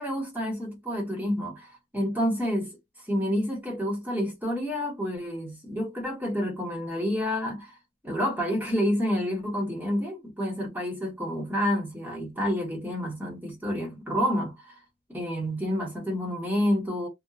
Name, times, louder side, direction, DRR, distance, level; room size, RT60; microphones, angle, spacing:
voice 1, 0.0-2.7 3.1-7.7 8.0-14.8 15.1-17.1, equal, 10° right, 1.1 m, -29 dB
2.9 x 2.2 x 2.3 m
head